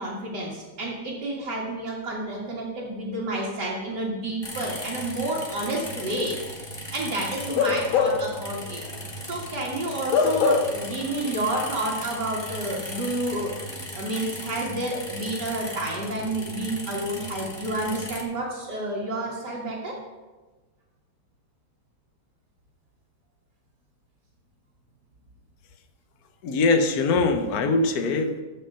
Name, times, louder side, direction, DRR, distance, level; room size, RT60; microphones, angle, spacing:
voice 1, 0.0-6.4 6.7-8.8 9.2-20.0, right 1 dB, 55° right, -6 dB, 2.5 m, -30 dB
sound 1, 4.4-18.2, left 1 dB, 15° left, 1.1 m, -37 dB
Bark / Livestock farm animals working animals, 7.5-8.4 8.8-9.0 10.1-10.9 11.2-11.4, left 6 dB, 80° left, 1.6 m, -23 dB
voice 2, 26.4-28.4, left 3 dB, 55° left, 6 dB, 1.3 m, -22 dB
15.0 x 5.7 x 5.6 m, 1.2 s
omnidirectional pair, 2.2 m